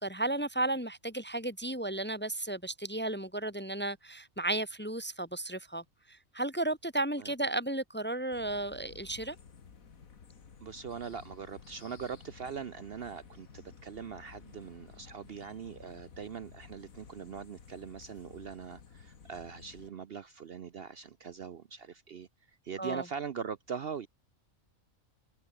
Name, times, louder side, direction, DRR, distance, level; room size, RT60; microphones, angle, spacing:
voice 1, 0.0-9.4 22.8-23.0, right 2 dB, 10° left, 1.0 m, -34 dB
sound 1, 8.3-19.9, left 6 dB, 85° left, 2.2 m, -54 dB
voice 2, 10.6-24.1, right 6 dB, 55° right, 0.9 m, -42 dB
omnidirectional pair, 1.4 m